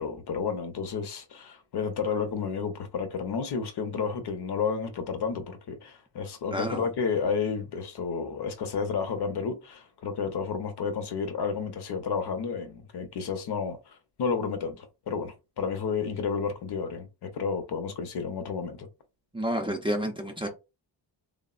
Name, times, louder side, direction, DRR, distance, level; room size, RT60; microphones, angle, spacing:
voice 1, 0.0-18.9, left 5 dB, 60° left, 0.7 m, -31 dB
voice 2, 6.5-6.9 19.3-20.5, equal, 10° right, 0.4 m, -30 dB
3.4 x 2.0 x 2.3 m
cardioid pair, 90°, 45 cm